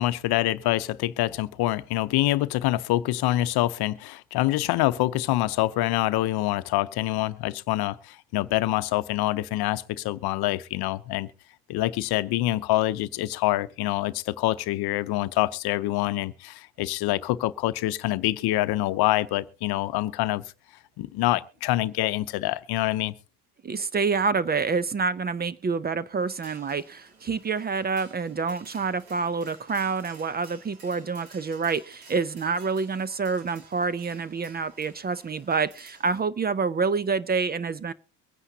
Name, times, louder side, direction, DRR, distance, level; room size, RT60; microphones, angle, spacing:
voice 1, 0.0-11.3 11.7-20.4 21.0-23.1, left 16 dB, 65° left, 0.8 m, -26 dB
voice 2, 23.6-37.9, right 5 dB, 25° right, 0.5 m, -27 dB
sound 1, 26.3-36.2, right 3 dB, 85° right, 4.2 m, -53 dB
23.5 x 9.8 x 2.8 m
supercardioid pair, 90°, 41 cm